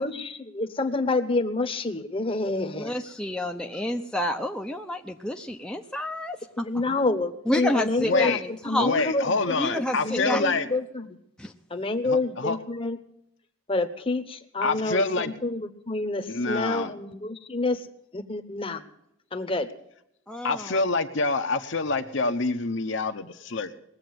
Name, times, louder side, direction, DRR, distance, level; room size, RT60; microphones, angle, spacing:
voice 1, 0.0-2.9 6.6-11.1 11.7-13.0 13.7-17.9 18.1-18.8 19.3-19.7, left 2 dB, 25° left, 7 dB, 1.0 m, -28 dB
voice 2, 2.6-6.7 7.5-9.1 9.6-10.4 11.4-11.5 20.3-20.8, left 1 dB, 5° left, 2 dB, 0.7 m, -29 dB
voice 3, 8.0-8.4 8.8-10.7 12.0-12.6 14.6-15.3 16.3-16.9 20.4-23.7, left 3 dB, 60° left, 7 dB, 1.0 m, -26 dB
19.5 x 7.9 x 7.8 m, 0.79 s
head